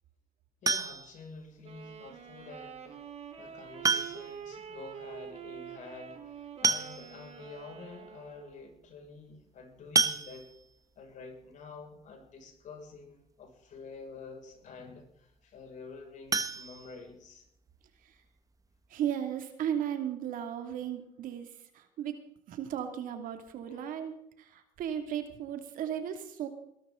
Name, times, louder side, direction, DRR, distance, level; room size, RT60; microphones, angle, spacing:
voice 1, 0.6-3.1 3.4-10.5 11.0-17.5 23.7-23.9, left 4 dB, 60° left, 3 dB, 6.1 m, -48 dB
sound 1, 0.7-1.3 2.8-2.9 3.8-4.5 4.8-4.9 5.1-5.2 6.2-6.3 6.6-7.4 7.9-8.0 8.3-8.5 10.0-10.8 16.3-17.5 17.9-18.0 18.4-18.5 18.8-18.9, right 4 dB, 25° right, 1.1 m, -30 dB
Wind instrument woodwind instrument, 1.6-8.8, right 8 dB, 45° right, 3.9 m, -46 dB
voice 2, 18.9-21.5 22.0-22.1 22.5-24.1 24.5-26.5, right 9 dB, 70° right, 7 dB, 2.6 m, -35 dB
21.5 x 13.0 x 3.9 m, 0.75 s
supercardioid pair, 80°, 15 cm